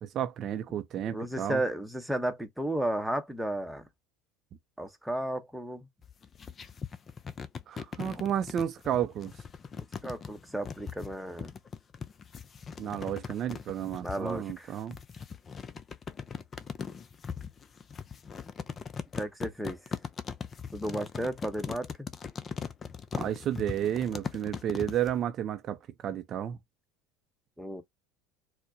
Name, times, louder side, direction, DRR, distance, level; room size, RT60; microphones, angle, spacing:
voice 1, 0.0-1.6 7.7-9.3 12.8-15.0 23.2-26.6, right 10 dB, 45° right, 0.5 m, -32 dB
voice 2, 1.1-3.8 4.8-5.9 9.8-11.5 14.0-14.7 19.2-19.8 20.7-22.1 27.6-27.8, right 1 dB, 5° right, 0.8 m, -33 dB
sound 1, 6.0-25.1, left 6 dB, 30° left, 0.5 m, -40 dB
4.4 x 2.1 x 2.6 m
hypercardioid pair, 80°, 0 cm